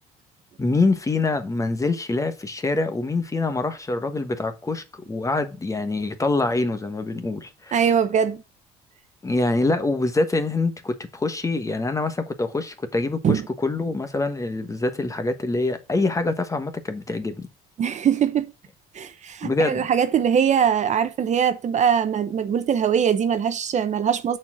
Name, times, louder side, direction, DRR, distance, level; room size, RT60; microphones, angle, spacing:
voice 1, 0.6-7.8 9.2-17.5 19.4-19.9, left 3 dB, 20° left, 1.2 m, -25 dB
voice 2, 7.7-8.4 13.2-13.5 17.8-18.5 18.9-24.4, right 8 dB, 45° right, 0.8 m, -22 dB
6.6 x 4.4 x 6.1 m
cardioid pair, 110°, 17 cm